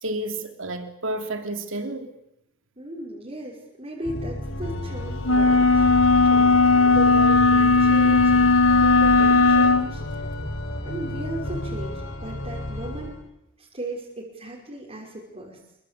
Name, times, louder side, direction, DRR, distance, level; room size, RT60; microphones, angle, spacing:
voice 1, 0.0-2.1, right 1 dB, 70° right, 3.1 m, -31 dB
voice 2, 2.8-5.8 6.2-10.3 10.8-13.2 13.6-15.6, right 1 dB, 30° right, 5.4 m, -37 dB
Organ, 4.0-13.2, left 1 dB, 70° left, 5.0 m, -32 dB
sound 1, 5.2-9.9, left 3 dB, 85° left, 1.7 m, -17 dB
27.0 x 23.5 x 8.5 m
head